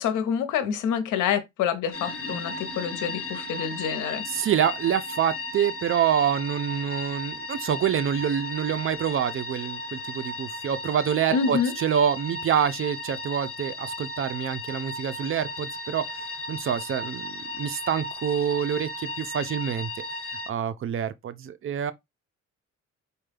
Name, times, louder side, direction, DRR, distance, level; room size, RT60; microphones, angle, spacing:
voice 1, 0.0-4.2 11.3-11.7, left 7 dB, 90° left, 0.8 m, -27 dB
sound 1, 1.9-20.5, left 2 dB, 50° left, 1.2 m, -35 dB
voice 2, 4.2-19.9 20.3-21.9, right 8 dB, 45° right, 0.5 m, -27 dB
4.3 x 2.2 x 3.3 m
cardioid pair, 90°, 30 cm